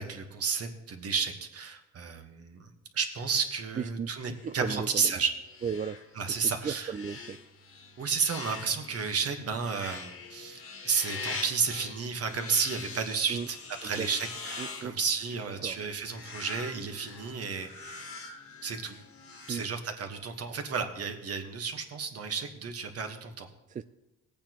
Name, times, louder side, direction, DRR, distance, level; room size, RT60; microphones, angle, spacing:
voice 1, 0.0-2.7 2.9-5.3 6.2-6.9 8.0-13.6 13.8-17.7 18.6-19.0 19.5-23.5, right 5 dB, 50° right, 5 dB, 1.4 m, -32 dB
voice 2, 3.8-5.2 5.6-6.0 6.3-7.4 13.3-13.5 13.8-14.1 14.6-15.0 15.6-15.8 19.5-19.6 23.7-23.8, right 6 dB, 25° right, 11 dB, 0.3 m, -36 dB
sound 1, 4.3-20.3, left 4 dB, 50° left, 1.7 m, -44 dB
18.0 x 8.7 x 3.0 m, 0.95 s
cardioid pair, 90°, 30 cm